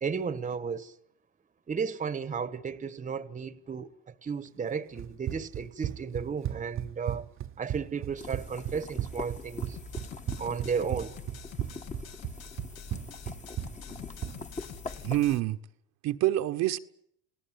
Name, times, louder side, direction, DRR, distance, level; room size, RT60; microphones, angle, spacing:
voice 1, 0.0-0.9 1.7-3.9 4.2-7.3 7.6-9.8 10.4-11.2, right 6 dB, 25° right, 1.4 m, -34 dB
Run, 5.0-14.4, right 12 dB, 45° right, 1.0 m, -36 dB
sound 1, 8.2-15.4, left 4 dB, 25° left, 2.2 m, -43 dB
sound 2, 9.8-15.4, left 9 dB, 60° left, 1.5 m, -47 dB
voice 2, 15.0-15.6 16.0-16.8, right 15 dB, 65° right, 1.3 m, -26 dB
29.5 x 18.5 x 7.6 m
supercardioid pair, 105°, 30 cm